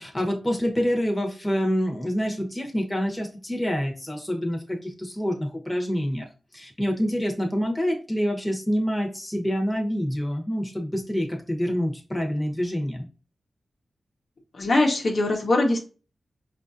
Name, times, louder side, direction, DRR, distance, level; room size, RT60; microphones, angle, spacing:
voice 1, 0.0-6.3 6.5-13.1, equal, 10° left, 1 dB, 1.1 m, -27 dB
voice 2, 14.5-15.8, left 2 dB, 65° left, 0 dB, 1.0 m, -22 dB
5.1 x 2.5 x 2.6 m, 0.34 s
cardioid pair, 65°, 0 cm